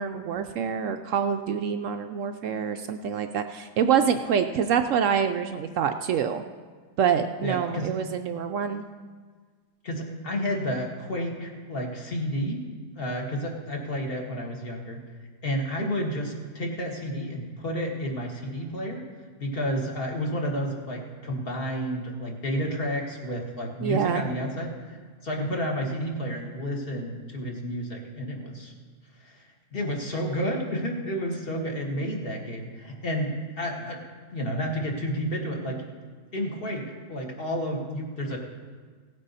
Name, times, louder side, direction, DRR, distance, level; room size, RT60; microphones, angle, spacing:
voice 1, 0.0-6.4 7.0-8.8 23.8-24.2, right 7 dB, 70° right, 7 dB, 0.8 m, -26 dB
voice 2, 7.4-7.9 9.8-12.7 13.0-15.0 15.4-19.0 19.4-28.7 29.2-34.0 34.3-35.8 36.3-38.4, equal, 35° left, 0 dB, 1.9 m, -31 dB
17.5 x 8.9 x 4.1 m, 1.5 s
omnidirectional pair, 1.7 m